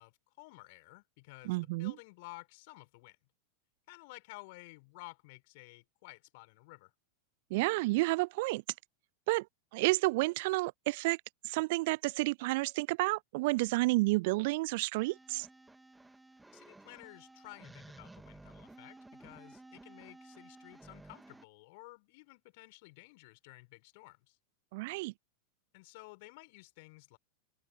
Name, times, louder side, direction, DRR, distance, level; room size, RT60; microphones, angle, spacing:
voice 1, 0.0-3.2 3.9-6.9 16.5-24.4 25.7-27.2, left 25 dB, 50° left, 6.7 m, -53 dB
voice 2, 1.5-1.9 7.5-8.6 9.3-9.5 9.7-11.2 11.4-15.5 24.7-25.1, right 23 dB, 50° right, 0.4 m, -30 dB
sound 1, 14.9-21.4, right 2 dB, 5° right, 2.3 m, -55 dB
figure-of-eight pair, 90°, 0 cm